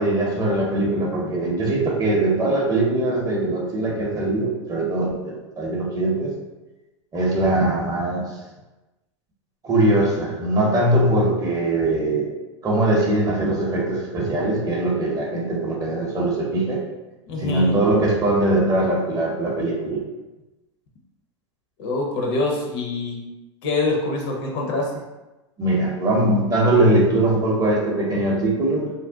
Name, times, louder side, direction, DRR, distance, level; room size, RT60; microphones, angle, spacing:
voice 1, 0.0-6.4 7.1-8.4 9.6-12.3 12.6-16.8 17.4-20.0 25.6-28.9, right 1 dB, 20° right, -2 dB, 0.7 m, -21 dB
voice 2, 17.3-17.8 21.8-23.2 23.6-24.9, left 2 dB, 50° left, 0 dB, 0.8 m, -25 dB
2.6 x 2.1 x 3.5 m, 1.1 s
hypercardioid pair, 115°, 16 cm